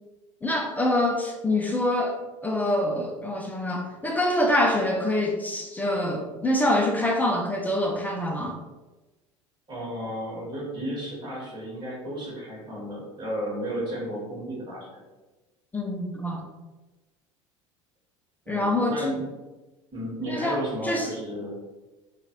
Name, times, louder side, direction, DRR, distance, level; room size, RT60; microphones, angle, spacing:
voice 1, 0.4-8.6 15.7-16.4 18.5-19.0 20.3-21.1, left 1 dB, 10° left, 1 dB, 0.4 m, -25 dB
voice 2, 9.7-15.0 18.4-19.3 19.9-21.6, equal, 30° right, -5 dB, 1.4 m, -33 dB
2.8 x 2.3 x 2.9 m, 1.2 s
figure-of-eight pair, 70°, 16 cm